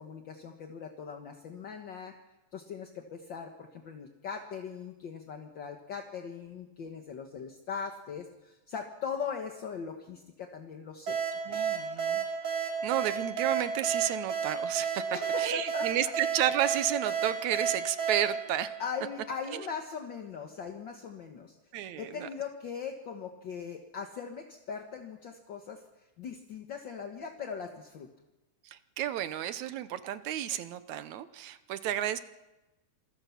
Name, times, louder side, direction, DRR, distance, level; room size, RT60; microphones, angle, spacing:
voice 1, 0.0-2.1 2.5-11.2 15.1-16.1 18.8-21.6 22.0-28.1, left 6 dB, 50° left, 4 dB, 1.5 m, -40 dB
sound 1, 11.1-19.5, right 7 dB, 45° right, 4.7 m, -32 dB
voice 2, 11.5-12.3 12.6-18.7 19.5-19.7 21.7-22.3 28.6-32.2, right 11 dB, 70° right, 12 dB, 2.1 m, -32 dB
27.0 x 21.5 x 5.8 m, 1.0 s
omnidirectional pair, 3.7 m